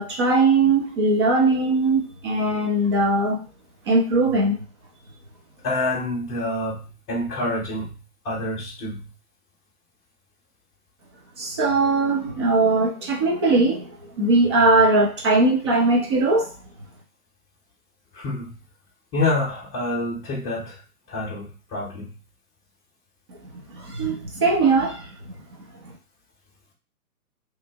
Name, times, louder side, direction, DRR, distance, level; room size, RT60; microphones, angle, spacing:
voice 1, 0.0-3.4 3.9-4.6 11.4-16.5 23.5-25.3 25.8-25.9, right 3 dB, 20° right, 0 dB, 0.5 m, -20 dB
voice 2, 5.6-9.1 18.1-18.6 19.1-20.8 21.1-22.2, left 2 dB, 20° left, -5 dB, 0.9 m, -27 dB
3.0 x 2.5 x 3.4 m, 0.34 s
figure-of-eight pair, 130°, 45 cm